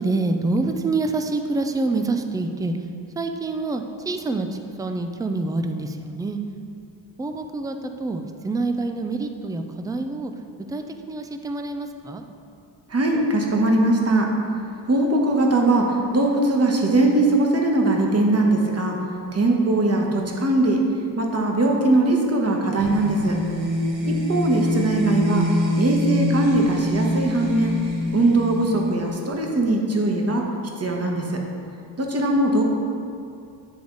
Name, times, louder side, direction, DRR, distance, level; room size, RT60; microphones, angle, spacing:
voice 1, 0.0-2.8 3.2-6.4 7.2-10.3 10.7-12.2 23.9-24.5 31.8-32.0, right 3 dB, 10° right, 6 dB, 0.3 m, -27 dB
voice 2, 12.9-14.3 14.9-19.0 19.3-20.8 21.2-23.4 24.1-25.5 25.7-27.7 28.1-30.5 30.8-31.2 32.0-32.6, right 2 dB, 35° right, 1 dB, 1.1 m, -20 dB
sound 1, 22.8-29.4, left 1 dB, 85° right, 0.9 m, -25 dB
9.6 x 3.4 x 3.9 m, 2.5 s
cardioid pair, 75°, 45 cm